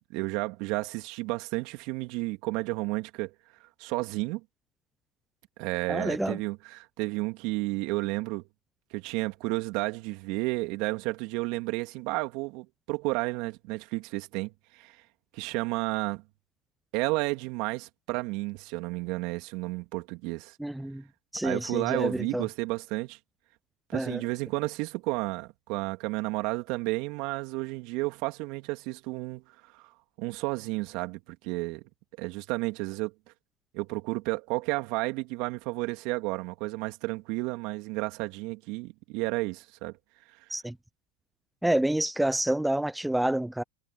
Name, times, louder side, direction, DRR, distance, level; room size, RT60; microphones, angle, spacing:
voice 1, 0.1-3.3 3.8-4.4 5.6-8.4 8.9-15.0 15.3-16.2 16.9-20.5 21.4-23.2 23.9-29.4 29.7-29.9 30.2-31.8 32.2-33.1 33.7-39.9, right 24 dB, 60° right, 3.0 m, -32 dB
voice 2, 5.9-6.4 20.6-21.0 21.3-22.4 23.9-24.2 40.5-40.7 41.6-43.6, right 1 dB, 5° right, 0.6 m, -28 dB
hypercardioid pair, 100°, 0 cm